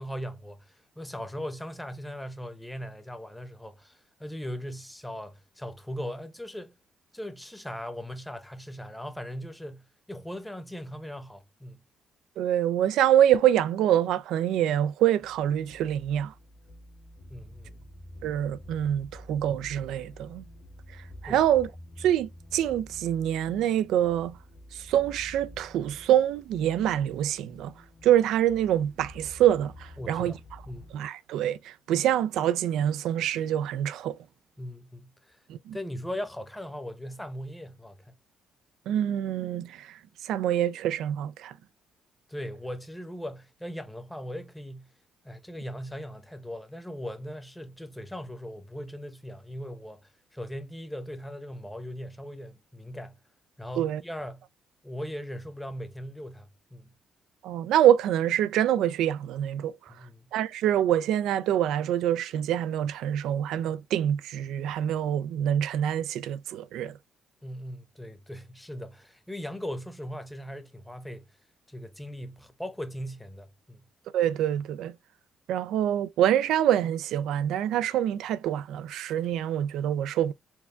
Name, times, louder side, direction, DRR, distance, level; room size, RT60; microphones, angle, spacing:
voice 1, 0.0-6.8 7.1-11.8 17.3-17.9 21.2-21.4 30.0-30.4 30.7-30.9 34.6-35.4 35.7-38.2 42.3-44.9 45.2-53.2 53.6-54.4 54.8-56.9 59.9-60.3 67.4-71.3 71.7-73.9, equal, 5° left, 0.8 m, -39 dB
voice 2, 12.4-16.3 18.2-20.4 21.2-21.7 22.0-24.4 24.7-27.7 28.0-30.3 30.9-34.2 35.5-35.8 38.9-39.9 40.2-41.5 53.8-54.0 57.4-59.8 60.3-67.0 74.1-74.9 75.5-80.3, right 11 dB, 85° right, 0.3 m, -25 dB
sound 1, 15.2-31.0, equal, 65° left, 1.8 m, -49 dB
4.5 x 2.3 x 3.3 m
cardioid pair, 90°, 0 cm